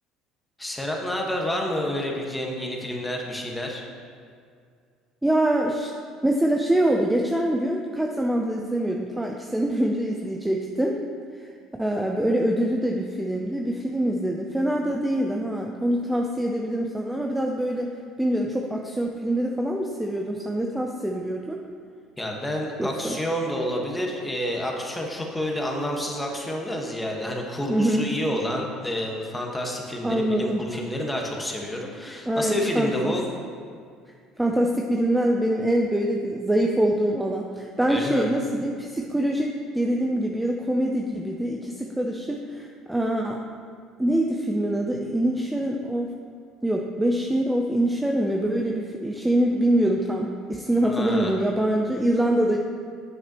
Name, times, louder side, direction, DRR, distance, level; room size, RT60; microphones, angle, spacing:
voice 1, 0.6-3.8 22.2-33.2 37.9-38.3 50.8-51.3, equal, 10° left, 0 dB, 1.5 m, -29 dB
voice 2, 5.2-5.9 6.2-11.0 11.4-11.5 11.8-17.9 18.2-21.6 22.8-23.2 27.7-28.0 30.0-30.6 32.3-33.1 34.4-43.4 44.0-46.1 46.6-52.6, right 1 dB, 10° right, 1 dB, 0.6 m, -24 dB
9.1 x 7.9 x 3.1 m, 2.2 s
hypercardioid pair, 75°, 0 cm